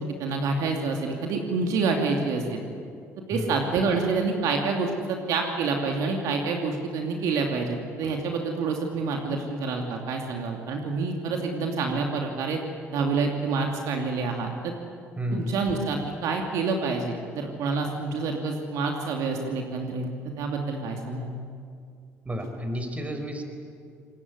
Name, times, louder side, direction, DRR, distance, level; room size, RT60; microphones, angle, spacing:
voice 1, 0.0-2.6 3.3-12.6 12.9-14.7 15.3-20.1 20.4-21.3, right 4 dB, 70° right, 2 dB, 2.8 m, -27 dB
voice 2, 15.2-15.5 22.2-23.4, equal, 25° right, 6 dB, 5.1 m, -31 dB
25.0 x 20.5 x 9.7 m, 2.3 s
supercardioid pair, 70°, 6 cm